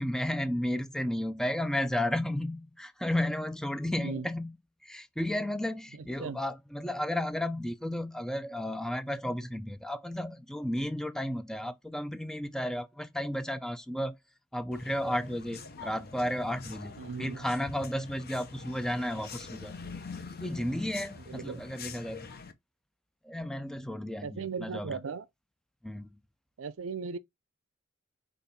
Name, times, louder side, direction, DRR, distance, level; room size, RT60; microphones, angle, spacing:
voice 1, 0.0-4.6 4.8-14.2 14.5-19.8 20.4-22.3 23.2-25.0 25.8-26.1, left 1 dB, 5° left, 0.3 m, -33 dB
voice 2, 4.0-4.3 6.2-6.4 17.0-17.4 21.3-21.6 24.2-25.3 26.6-27.2, right 5 dB, 80° right, 0.5 m, -37 dB
sound 1, 14.7-22.5, left 4 dB, 50° left, 0.7 m, -45 dB
5.2 x 2.5 x 4.1 m
head